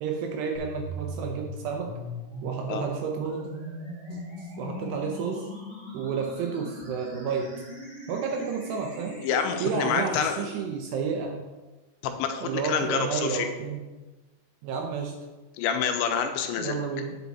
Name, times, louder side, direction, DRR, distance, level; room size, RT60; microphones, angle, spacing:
voice 1, 0.0-1.9 2.4-3.4 4.1-5.5 5.9-7.5 8.1-9.1 9.6-11.4 12.4-13.8 14.6-15.1 16.6-17.1, right 6 dB, 80° right, 3 dB, 2.5 m, -31 dB
sound 1, 0.5-10.6, equal, 45° right, 1.2 m, -40 dB
voice 2, 9.2-10.4 12.0-13.5 15.6-16.8, left 7 dB, 80° left, 6 dB, 2.9 m, -27 dB
9.2 x 5.8 x 4.1 m, 1.2 s
omnidirectional pair, 5.3 m